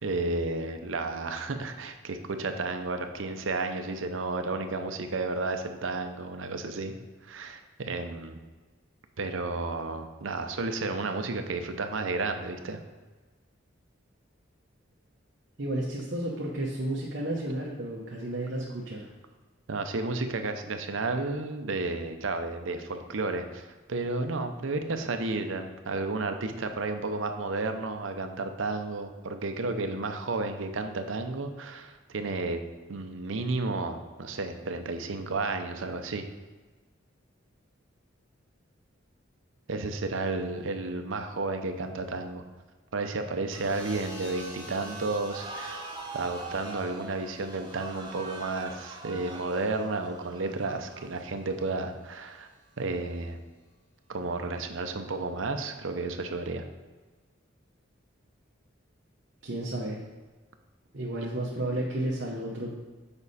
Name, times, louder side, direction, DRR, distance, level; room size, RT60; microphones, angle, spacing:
voice 1, 0.0-6.9 7.2-8.4 9.2-12.8 19.7-32.6 32.9-36.3 39.7-42.4 42.9-45.8 46.1-52.5 52.8-53.4 54.1-56.6, right 3 dB, 85° right, 7 dB, 0.7 m, -32 dB
voice 2, 15.6-19.1 59.4-60.0 60.9-62.7, right 1 dB, 60° right, -4 dB, 1.0 m, -32 dB
sound 1, 43.5-51.7 52.9-53.3, right 1 dB, 5° left, 1.2 m, -47 dB
sound 2, 45.3-51.7, right 3 dB, 20° right, 0.5 m, -43 dB
7.0 x 5.3 x 4.1 m, 1.3 s
head